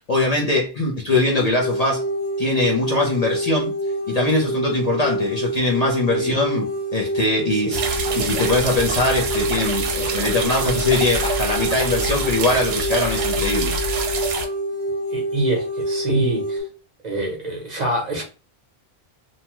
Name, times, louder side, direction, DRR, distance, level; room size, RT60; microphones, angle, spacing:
voice 1, 0.1-2.0 2.4-3.7 4.1-13.7, left 2 dB, 45° left, 0.6 m, -22 dB
sound 1, 1.6-16.6, right 1 dB, 85° left, 1.4 m, -26 dB
sound 2, 7.7-14.5, right 4 dB, 70° right, 0.8 m, -26 dB
voice 2, 15.1-16.6 17.0-18.2, right 1 dB, 45° right, 0.9 m, -25 dB
2.8 x 2.2 x 2.9 m
omnidirectional pair, 1.1 m